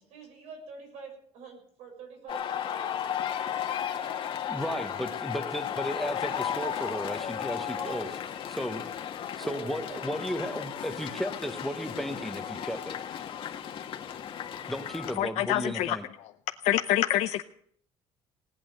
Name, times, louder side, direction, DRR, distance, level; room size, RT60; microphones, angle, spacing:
voice 1, 0.1-4.2 4.6-4.9 7.5-8.2 9.4-10.5, right 4 dB, 80° right, 2 dB, 7.0 m, -46 dB
sound 1, 2.3-15.2, left 9 dB, 50° left, 1.6 m, -35 dB
voice 2, 4.5-8.1 8.5-8.8 9.4-12.9 14.7-16.1, equal, ahead, 9 dB, 1.2 m, -34 dB
voice 3, 15.2-16.3 16.6-17.4, left 13 dB, 80° left, 7 dB, 0.7 m, -27 dB
18.0 x 8.6 x 9.1 m, 0.62 s
cardioid pair, 140°, 11 cm